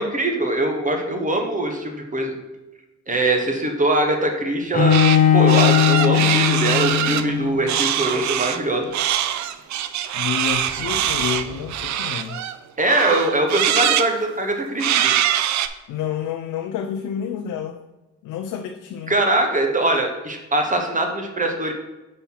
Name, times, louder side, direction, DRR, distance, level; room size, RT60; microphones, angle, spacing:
voice 1, 0.0-2.3 3.1-5.0 5.3-8.9 12.8-15.2 19.1-21.7, right 1 dB, 25° right, 3 dB, 1.2 m, -22 dB
Bowed string instrument, 4.7-7.7, left 9 dB, 30° left, 0.6 m, -18 dB
sound 1, 4.9-5.2 5.5-7.2 7.7-8.6 8.9-12.6 12.9-14.1 14.8-15.7, right 11 dB, 70° right, 0.5 m, -23 dB
sound 2, 6.8-7.8 10.4-11.9, equal, 50° right, 1.9 m, -41 dB
voice 2, 10.1-12.4 15.9-17.8 18.2-19.1, left 8 dB, 80° left, 4 dB, 0.6 m, -29 dB
5.5 x 4.4 x 5.7 m, 1.1 s
cardioid pair, 90°, 30 cm